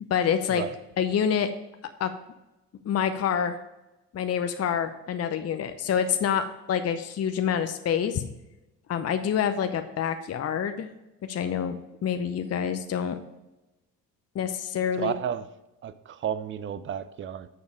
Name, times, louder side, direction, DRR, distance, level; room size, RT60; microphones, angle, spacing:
voice 1, 0.1-0.6 1.0-1.5 2.0-2.1 2.8-3.6 4.1-8.2 8.9-10.9 11.3-13.2 14.3-15.1, left 8 dB, 30° left, 8 dB, 0.7 m, -27 dB
voice 2, 15.0-15.5 15.8-17.5, right 9 dB, 25° right, 14 dB, 0.6 m, -32 dB
6.9 x 6.5 x 5.0 m, 0.97 s
figure-of-eight pair, 45°, 48 cm